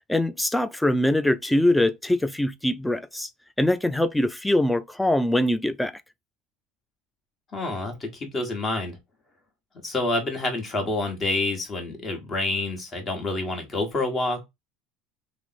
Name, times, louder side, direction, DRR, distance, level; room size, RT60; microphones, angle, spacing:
voice 1, 0.1-3.3 3.6-5.9, left 1 dB, 5° left, 0.4 m, -23 dB
voice 2, 7.5-9.0 9.8-14.4, left 2 dB, 30° left, 1.3 m, -28 dB
2.9 x 2.0 x 4.0 m
hypercardioid pair, 90°, 0 cm